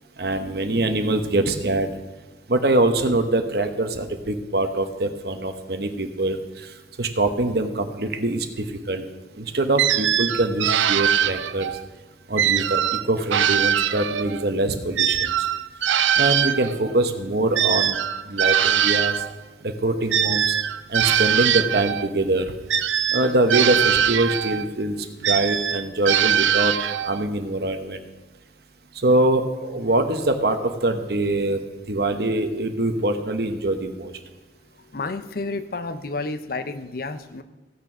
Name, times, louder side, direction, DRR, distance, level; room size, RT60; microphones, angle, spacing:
voice 1, 0.2-2.0 2.5-9.0 9.3-11.8 12.3-12.8 13.1-15.5 16.2-18.0 18.3-19.2 19.6-20.6 20.9-22.5 23.1-28.0 29.0-34.1, right 2 dB, 55° right, 7 dB, 1.0 m, -24 dB
sound 1, 9.8-11.8 12.4-14.4 15.0-19.3 20.1-22.1 22.7-24.7 25.2-27.2, right 9 dB, 85° right, 0.5 m, -22 dB
voice 2, 34.9-37.4, left 3 dB, 50° left, 11 dB, 0.6 m, -30 dB
15.5 x 6.6 x 6.1 m, 1.2 s
head